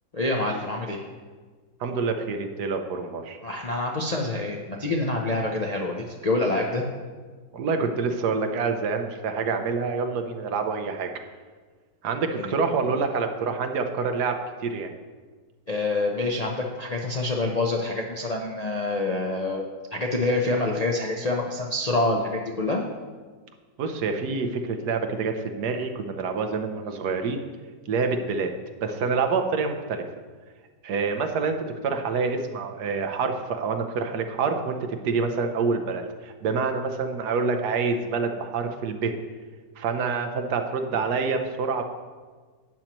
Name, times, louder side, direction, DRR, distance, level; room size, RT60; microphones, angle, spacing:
voice 1, 0.1-1.0 3.4-6.9 12.4-12.5 15.7-19.6 19.9-22.8, left 2 dB, 45° left, 0 dB, 0.5 m, -26 dB
voice 2, 1.8-3.4 6.5-6.6 7.5-11.1 12.0-14.3 14.6-14.9 23.8-27.4 27.9-28.5 28.8-30.0 30.8-31.6 31.8-34.8 35.0-36.0 36.4-39.1 39.8-41.8, right 4 dB, 70° right, 5 dB, 1.3 m, -27 dB
12.0 x 8.7 x 3.0 m, 1.5 s
omnidirectional pair, 1.8 m